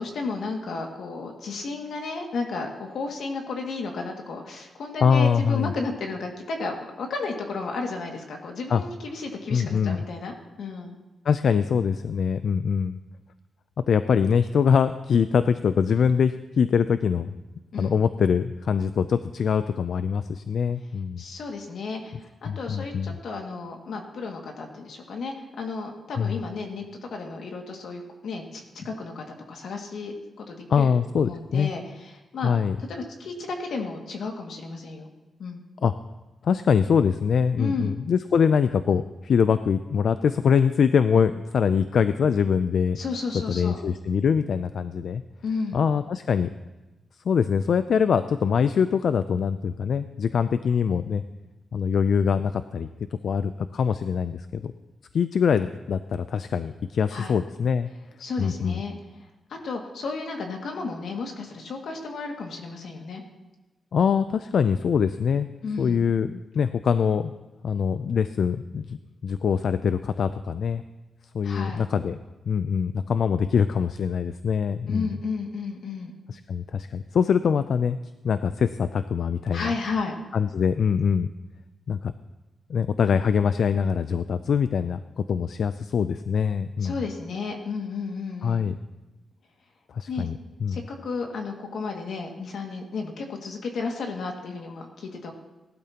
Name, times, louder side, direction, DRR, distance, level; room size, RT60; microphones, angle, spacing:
voice 1, 0.0-10.9 17.7-18.0 21.2-30.9 31.2-32.5 32.9-35.1 35.4-35.7 37.6-37.9 43.0-43.8 45.4-45.8 57.1-57.4 58.2-58.9 59.2-63.2 65.6-66.0 71.4-71.8 74.9-76.2 79.5-80.1 86.8-88.7 90.1-90.3 90.7-95.3, left 4 dB, 75° left, 2 dB, 2.1 m, -33 dB
voice 2, 5.0-5.7 8.7-8.8 9.5-10.0 11.3-13.0 13.9-17.3 17.8-21.2 22.5-23.2 26.2-26.4 30.7-31.7 32.4-32.8 35.8-35.9 36.4-43.0 43.5-45.2 45.7-46.5 47.3-51.2 51.7-52.9 53.2-54.7 55.1-57.9 58.4-58.8 63.9-65.5 65.8-67.3 67.6-70.8 71.3-72.2 72.5-75.1 76.3-78.0 78.2-79.7 80.3-81.3 81.9-82.1 82.7-87.0 88.4-88.7 89.9-90.8, left 6 dB, 60° left, 11 dB, 0.4 m, -23 dB
18.5 x 12.0 x 2.9 m, 1.1 s
wide cardioid pair, 175°, 0 cm